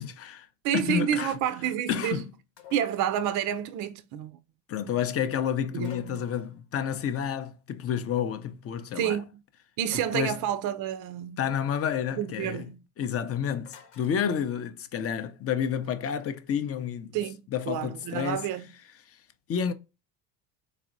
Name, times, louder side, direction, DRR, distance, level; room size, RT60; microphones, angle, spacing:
voice 1, 0.0-0.5 0.7-1.4 1.9-2.3 4.7-9.2 10.1-10.4 11.4-12.7 13.0-17.2 17.5-18.4 19.1-19.2 19.5-19.7, left 8 dB, 30° left, 0.5 m, -30 dB
voice 2, 0.6-2.2 2.7-4.4 5.7-6.3 8.9-9.4 9.8-11.4 12.2-12.8 17.1-18.7, right 10 dB, 40° right, 0.5 m, -29 dB
sound 1, 2.6-3.1 5.8-6.6 9.9-10.6 13.7-14.2, left 9 dB, 65° left, 1.0 m, -50 dB
4.1 x 3.1 x 2.5 m
hypercardioid pair, 80°, 48 cm